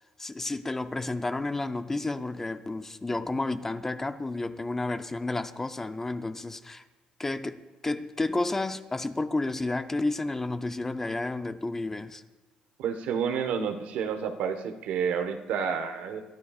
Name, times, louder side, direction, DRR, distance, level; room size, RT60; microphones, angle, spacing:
voice 1, 0.2-6.8 7.2-12.2, left 2 dB, 15° left, 0.6 m, -31 dB
voice 2, 12.8-16.2, right 7 dB, 80° right, 1.3 m, -30 dB
22.0 x 14.0 x 2.5 m
cardioid pair, 120°, 2 cm